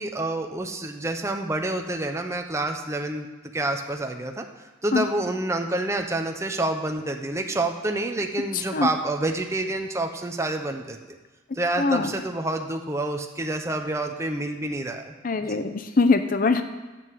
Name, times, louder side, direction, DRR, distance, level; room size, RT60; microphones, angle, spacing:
voice 1, 0.0-3.3 3.5-4.5 4.8-11.2 11.5-15.1 15.5-15.7, right 2 dB, 15° right, 4 dB, 0.8 m, -28 dB
voice 2, 8.5-8.9 11.8-12.1 15.2-16.6, left 4 dB, 45° left, 9 dB, 0.6 m, -22 dB
9.6 x 7.8 x 7.6 m, 1.2 s
head